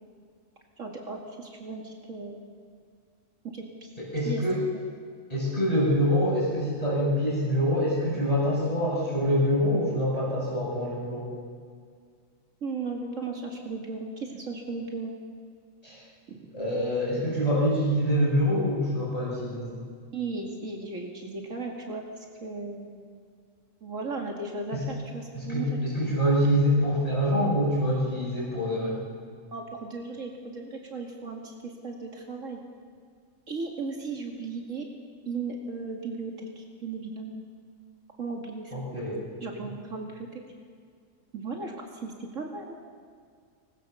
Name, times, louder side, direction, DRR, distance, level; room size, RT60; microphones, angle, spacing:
voice 1, 0.8-2.4 3.4-3.9 4.3-4.4 12.6-15.1 16.3-16.4 20.1-23.0 23.8-25.7 29.5-32.6 33.5-34.9 35.3-37.4 38.2-38.7 39.4-40.4 41.3-42.8, right 3 dB, 70° right, 1 dB, 2.5 m, -36 dB
voice 2, 4.0-4.6 5.3-11.3 15.8-15.9 16.5-19.7 24.7-24.8 25.3-29.0 38.7-39.2, equal, 25° left, -7 dB, 7.8 m, -25 dB
24.0 x 20.5 x 6.9 m, 2.1 s
omnidirectional pair, 1.4 m